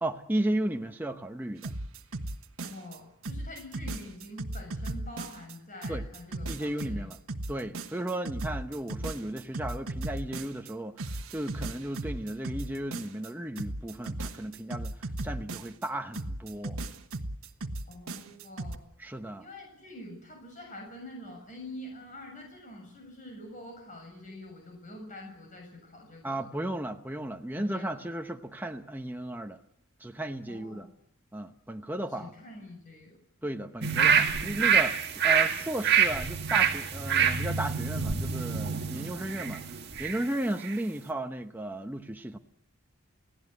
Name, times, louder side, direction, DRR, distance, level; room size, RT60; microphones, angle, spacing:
voice 1, 0.0-1.7 5.9-6.0 6.5-7.2 7.5-16.8 19.0-19.5 26.2-29.6 30.0-30.9 31.3-32.3 33.4-42.4, right 1 dB, 10° right, 0.9 m, -34 dB
sound 1, 1.6-3.0 3.2-5.5 5.8-10.7 11.0-13.3 13.6-15.9 16.1-18.8, right 2 dB, 75° right, 1.4 m, -36 dB
voice 2, 2.6-7.0 17.9-18.8 19.4-26.5 27.5-28.1 30.5-30.9 32.2-33.1 38.9-39.2, left 1 dB, 35° left, 7.2 m, -46 dB
sound 2, 33.8-40.2 40.6-40.7, right 7 dB, 45° right, 1.9 m, -26 dB
29.0 x 17.0 x 8.2 m
head